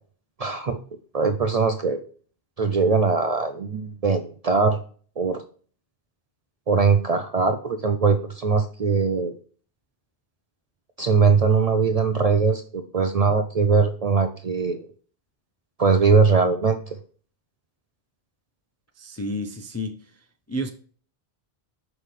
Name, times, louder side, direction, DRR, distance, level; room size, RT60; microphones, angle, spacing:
voice 1, 0.4-0.8 1.1-2.0 2.6-4.8 5.2-5.4 6.7-9.3 11.0-14.9 15.8-17.0, right 5 dB, 50° right, 0.5 m, -21 dB
voice 2, 19.0-20.0 20.5-20.7, equal, 25° left, 0.3 m, -30 dB
6.0 x 5.5 x 3.2 m
omnidirectional pair, 1.1 m